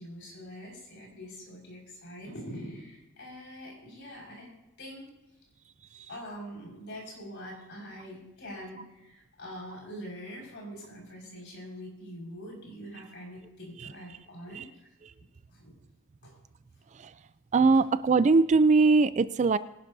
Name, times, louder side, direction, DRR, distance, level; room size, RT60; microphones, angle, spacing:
voice 1, 0.0-4.5 4.8-5.0 6.1-14.7 15.5-15.7 16.2-16.3, equal, 55° left, -2 dB, 5.3 m, -44 dB
voice 2, 17.5-19.6, right 4 dB, 35° right, 14 dB, 0.3 m, -22 dB
23.0 x 11.5 x 2.7 m, 0.99 s
head